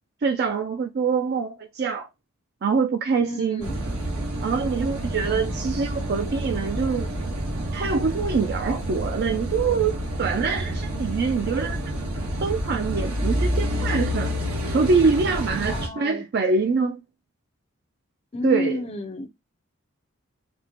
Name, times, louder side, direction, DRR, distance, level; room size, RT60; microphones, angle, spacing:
voice 1, 0.2-2.1 2.6-3.6 4.4-7.1 7.7-11.8 12.4-14.4 14.7-17.0 18.4-18.8, right 5 dB, 50° right, 0.3 m, -24 dB
voice 2, 3.2-3.8 5.3-5.4 15.7-16.2 18.3-19.3, left 1 dB, 30° left, 0.5 m, -31 dB
Car passing by / Idling / Accelerating revving vroom, 3.6-15.9, equal, 85° right, 1.2 m, -28 dB
4.2 x 2.1 x 2.9 m
head